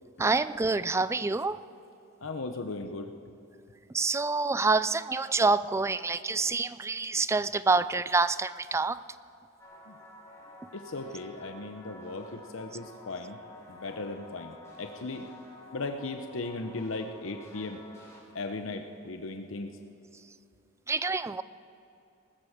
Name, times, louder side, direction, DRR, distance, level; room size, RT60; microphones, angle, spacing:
voice 1, 0.2-1.6 3.9-9.0 20.9-21.4, right 3 dB, 15° right, 16 dB, 0.3 m, -27 dB
voice 2, 2.2-3.1 9.9-10.0 10.7-13.4 13.7-15.3 15.7-17.8 18.3-19.8, left 3 dB, 75° left, 5 dB, 0.8 m, -37 dB
sound 1, 9.6-18.2, left 2 dB, 15° left, 4.3 m, -51 dB
20.0 x 13.5 x 5.0 m, 2.8 s
head